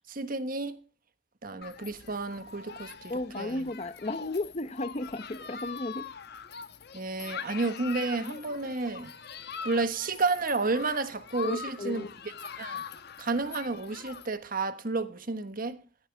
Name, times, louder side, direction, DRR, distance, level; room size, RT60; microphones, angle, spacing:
voice 1, 0.1-0.8 1.4-3.7 6.9-9.1 9.6-12.1 12.6-12.8 13.2-15.8, right 3 dB, 50° right, 1.4 m, -31 dB
Human group actions, 1.6-14.3, left 6 dB, 60° left, 1.1 m, -43 dB
voice 2, 3.1-6.1 11.4-12.1, left 2 dB, 35° left, 0.9 m, -34 dB
15.5 x 13.5 x 3.4 m
head